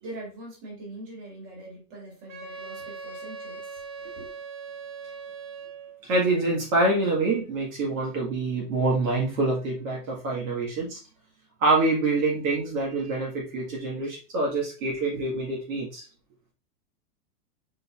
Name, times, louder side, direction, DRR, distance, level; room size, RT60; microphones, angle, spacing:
voice 1, 0.0-3.8 4.1-4.3, right 1 dB, 30° right, 2.2 m, -42 dB
Wind instrument woodwind instrument, 2.3-6.0, right 5 dB, 90° right, 2.3 m, -40 dB
voice 2, 6.0-11.0 11.6-16.1, right 2 dB, 55° right, 1.8 m, -26 dB
5.2 x 4.0 x 2.4 m
supercardioid pair, 165°, 49 cm